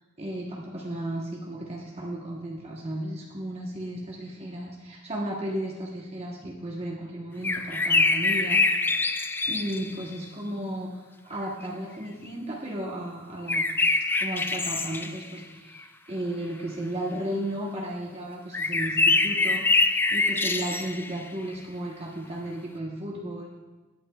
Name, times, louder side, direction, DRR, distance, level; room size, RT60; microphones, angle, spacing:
voice 1, 0.2-13.6 14.2-23.5, right 1 dB, 30° right, -3 dB, 1.1 m, -34 dB
sound 1, 7.4-10.1 13.5-15.4 15.8-15.9 18.5-21.2, left 3 dB, 10° left, 0.3 m, -24 dB
16.5 x 10.5 x 2.3 m, 1.2 s
head